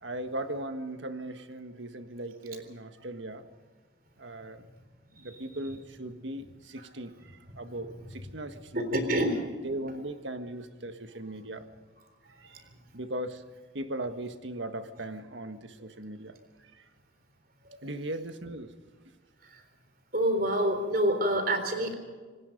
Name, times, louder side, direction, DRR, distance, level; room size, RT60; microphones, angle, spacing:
voice 1, 0.0-3.4 4.2-4.7 5.1-9.0 9.6-11.7 12.4-12.7 12.9-13.4 13.7-16.9 17.8-18.7, right 1 dB, 75° right, 8 dB, 1.6 m, -38 dB
voice 2, 8.8-9.4 20.1-21.9, equal, 50° right, 8 dB, 3.7 m, -26 dB
26.5 x 19.5 x 5.3 m, 1.5 s
head